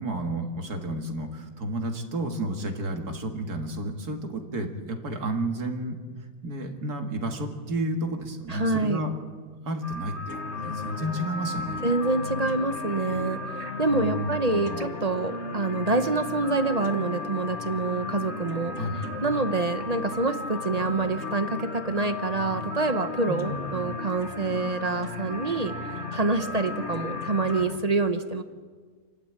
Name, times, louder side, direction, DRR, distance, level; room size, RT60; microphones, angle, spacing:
voice 1, 0.0-6.0 6.4-9.1 9.7-11.8 13.9-14.8 18.8-19.1 23.3-24.0, right 1 dB, 60° right, 4 dB, 2.4 m, -31 dB
voice 2, 8.5-9.0 11.8-18.7 19.2-28.4, right 3 dB, 35° right, 9 dB, 0.7 m, -27 dB
sound 1, 9.8-27.7, left 3 dB, 20° right, 2.4 m, -38 dB
sound 2, 10.3-27.8, left 4 dB, 45° left, 1.5 m, -37 dB
28.0 x 12.0 x 8.9 m, 1.5 s
omnidirectional pair, 1.9 m